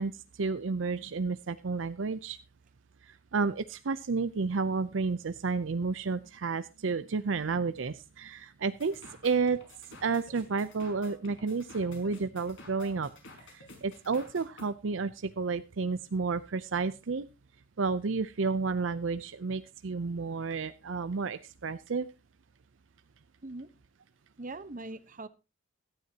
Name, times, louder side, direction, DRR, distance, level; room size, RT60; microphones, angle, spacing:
voice 1, 0.0-2.4 3.0-9.6 10.0-13.1 13.5-17.3 17.8-22.1, right 4 dB, 70° right, 12 dB, 0.6 m, -31 dB
sound 1, 8.8-14.7, left 2 dB, 70° left, 4.8 m, -50 dB
voice 2, 24.4-25.3, right 2 dB, 40° right, 13 dB, 1.0 m, -41 dB
17.0 x 12.5 x 2.8 m, 0.28 s
head